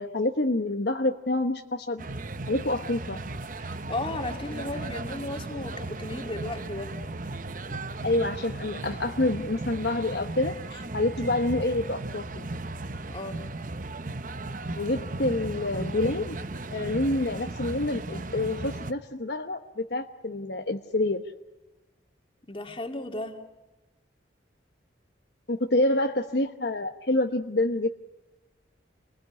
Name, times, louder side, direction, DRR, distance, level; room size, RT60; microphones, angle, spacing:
voice 1, 0.0-2.0 2.5-3.2 8.0-12.5 14.7-16.4 16.7-21.2 25.5-27.9, left 2 dB, 60° left, 1.1 m, -27 dB
sound 1, 2.0-18.9, right 2 dB, 45° right, 0.9 m, -36 dB
voice 2, 3.6-7.0 13.1-13.4 22.5-23.4, left 2 dB, 30° left, 2.6 m, -35 dB
29.0 x 21.0 x 9.8 m
head